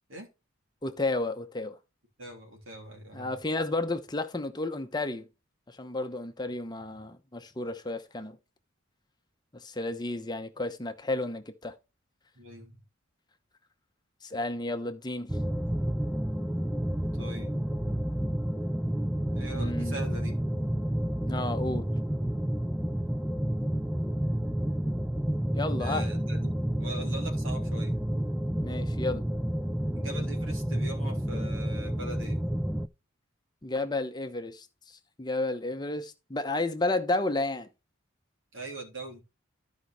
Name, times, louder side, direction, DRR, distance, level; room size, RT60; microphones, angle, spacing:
voice 1, 0.8-1.8 3.1-5.3 5.7-8.4 9.5-11.7 14.2-15.4 19.5-20.0 21.3-21.9 25.5-26.1 28.6-29.3 33.6-37.7, left 2 dB, 20° left, 0.8 m, -32 dB
voice 2, 2.2-3.3 6.8-7.0 12.3-12.8 17.1-17.6 19.3-20.4 25.8-28.0 29.9-32.4 38.5-39.2, right 1 dB, 70° right, 3.4 m, -41 dB
sound 1, 15.3-32.9, right 1 dB, 5° right, 0.4 m, -30 dB
14.0 x 5.2 x 3.1 m
head